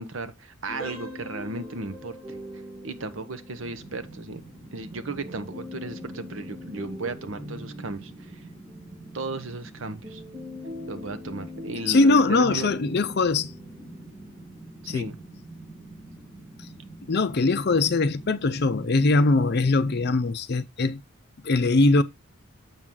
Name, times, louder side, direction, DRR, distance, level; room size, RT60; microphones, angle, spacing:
voice 1, 0.0-2.2 2.8-4.4 4.7-8.4 9.1-10.2 10.9-12.8 14.8-15.2, right 3 dB, 60° right, 0.9 m, -35 dB
sound 1, 0.7-14.5, left 1 dB, 45° right, 4.6 m, -43 dB
sound 2, 0.8-11.4 11.8-12.0 12.6-12.7 13.2-13.4, right 6 dB, ahead, 4.4 m, -50 dB
sound 3, 3.6-20.2, right 2 dB, 20° right, 2.7 m, -46 dB
voice 2, 11.9-13.5 14.9-15.1 17.1-21.0 21.4-22.0, left 3 dB, 45° left, 0.5 m, -21 dB
7.2 x 6.1 x 3.8 m
head